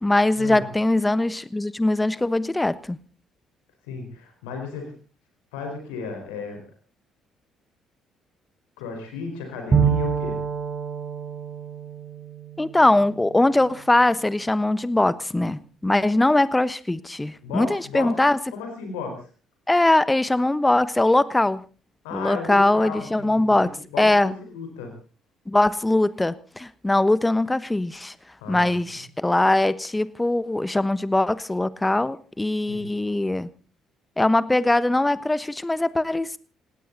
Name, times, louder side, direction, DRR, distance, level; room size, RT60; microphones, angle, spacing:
voice 1, 0.0-3.0 12.6-18.4 19.7-21.6 22.1-24.3 25.5-28.1 28.5-33.5 34.2-36.4, left 2 dB, 15° left, 17 dB, 1.2 m, -21 dB
voice 2, 3.9-4.9 5.5-6.6 8.8-10.4 17.4-18.1 18.5-19.3 22.0-23.4 23.9-24.9 28.4-28.7 32.7-32.9, left 4 dB, 75° left, 4 dB, 4.7 m, -34 dB
Bowed string instrument, 9.7-13.4, right 6 dB, 35° right, 6.8 m, -26 dB
19.5 x 17.5 x 4.1 m, 0.36 s
hypercardioid pair, 50°, 0 cm